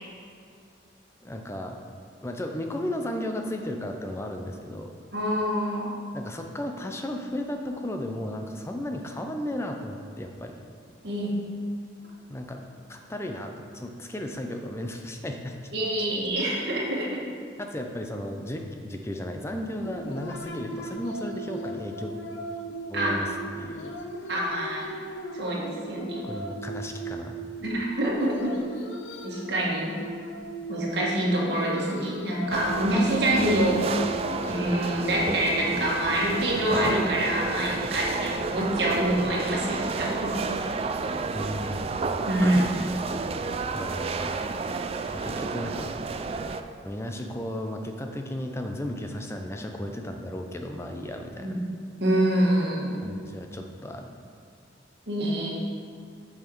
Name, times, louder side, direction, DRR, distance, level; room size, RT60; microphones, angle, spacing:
voice 1, 1.2-1.8 2.2-4.9 6.1-10.5 12.3-15.7 17.6-22.1 22.9-24.3 26.2-27.3 41.3-41.9 42.4-42.7 43.7-44.3 45.1-45.9 46.8-51.6 53.0-54.1, left 1 dB, 15° left, 3 dB, 0.5 m, -34 dB
voice 2, 5.1-5.9 11.0-11.3 15.7-17.2 22.9-23.2 24.3-24.9 25.3-26.3 27.6-28.6 29.2-30.0 30.7-34.0 34.5-40.3 40.7-40.8 42.2-42.6 51.4-51.6 52.0-53.1 55.1-55.5, right 1 dB, 65° right, -4 dB, 1.8 m, -26 dB
sound 1, 19.8-39.4, right 1 dB, 85° left, 0.7 m, -38 dB
sound 2, 32.5-46.6, right 4 dB, 30° right, 0.3 m, -31 dB
8.3 x 5.7 x 4.5 m, 2.4 s
head